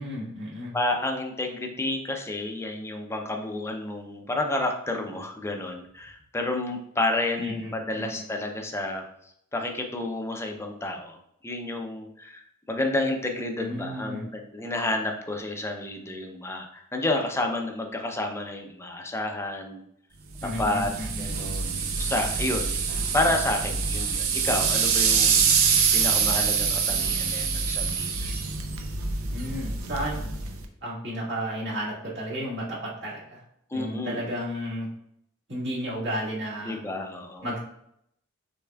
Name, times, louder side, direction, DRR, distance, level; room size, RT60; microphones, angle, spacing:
voice 1, 0.0-0.7 7.4-8.2 13.6-14.3 20.4-21.2 29.3-30.3 30.8-33.4 33.7-34.9 35.5-36.8 37.4-37.6, equal, 55° right, -7 dB, 1.9 m, -33 dB
voice 2, 0.7-9.0 9.5-11.2 11.4-19.8 20.4-20.9 21.2-25.5 25.9-28.3 33.7-34.3 36.6-37.5, left 2 dB, 10° left, 3 dB, 0.5 m, -30 dB
sound 1, 20.4-30.7, right 6 dB, 80° right, 0.6 m, -25 dB
6.6 x 3.5 x 2.3 m, 0.74 s
head